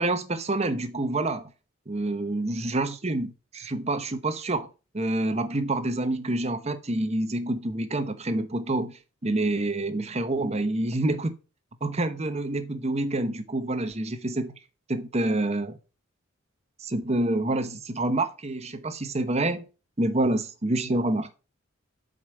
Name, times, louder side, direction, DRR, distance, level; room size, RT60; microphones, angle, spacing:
voice 1, 0.0-1.5 1.9-4.7 4.9-11.3 11.8-14.6 14.9-15.8 16.8-19.6 20.0-21.3, right 2 dB, 30° right, 0.9 m, -27 dB
8.1 x 5.3 x 6.4 m
head